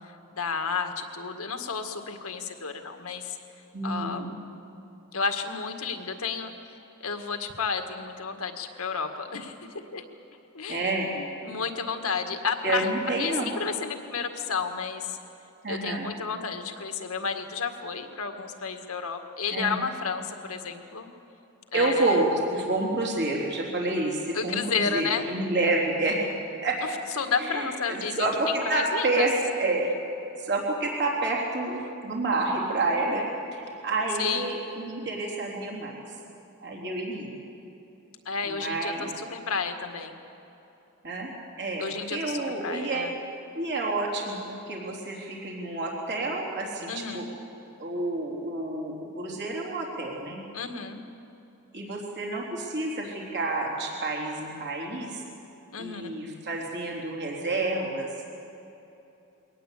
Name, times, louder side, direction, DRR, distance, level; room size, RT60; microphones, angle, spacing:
voice 1, 0.3-3.4 3.8-4.3 5.1-6.5 7.0-9.6 9.9-10.0 10.5-10.8 11.1-13.3 13.6-15.2 15.7-21.1 21.7-22.2 24.3-25.3 27.2-29.3 34.2-34.5 38.3-40.2 41.8-43.1 46.9-47.3 50.5-51.0 55.7-56.2, left 5 dB, 80° left, 6 dB, 1.9 m, -31 dB
voice 2, 3.7-4.3 10.7-11.1 12.6-13.5 15.6-16.1 19.5-19.8 21.7-26.2 26.6-26.8 27.4-29.9 30.4-36.0 36.6-37.4 38.4-39.1 41.0-41.3 41.6-41.8 42.1-43.1 43.5-47.3 47.8-50.4 51.7-55.2 55.8-58.3, right 2 dB, 50° right, -1 dB, 3.7 m, -29 dB
22.5 x 18.5 x 8.5 m, 2.9 s
head